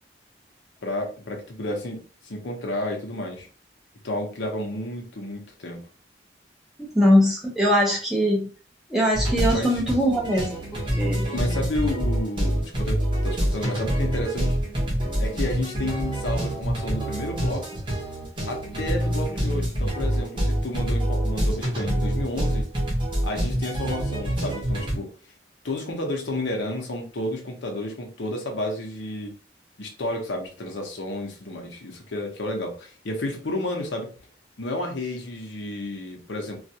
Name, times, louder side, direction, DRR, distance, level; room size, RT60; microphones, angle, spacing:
voice 1, 0.8-3.5 4.0-5.8 9.5-9.8 11.3-14.6 15.2-17.8 18.5-22.7 23.2-25.1 25.6-29.3 29.8-34.1 34.6-36.6, left 1 dB, 90° left, 2 dB, 0.7 m, -31 dB
voice 2, 6.8-8.5 8.9-11.3, equal, ahead, -4 dB, 0.6 m, -22 dB
sound 1, 9.1-25.0, equal, 25° right, 0.8 m, -26 dB
2.4 x 2.2 x 2.7 m, 0.37 s
head